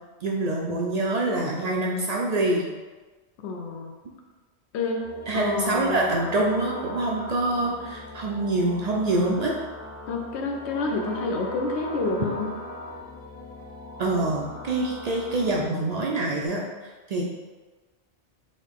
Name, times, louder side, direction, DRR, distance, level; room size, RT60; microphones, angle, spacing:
voice 1, 0.2-2.6 5.3-9.5 14.0-17.2, right 2 dB, 60° right, -2 dB, 0.4 m, -25 dB
voice 2, 3.4-3.9 4.7-5.1 5.3-6.1 10.1-12.5, left 3 dB, 75° left, 2 dB, 0.9 m, -28 dB
sound 1, 5.0-15.6, equal, 55° left, 1.1 m, -39 dB
3.8 x 2.6 x 3.5 m, 1.3 s
omnidirectional pair, 1.1 m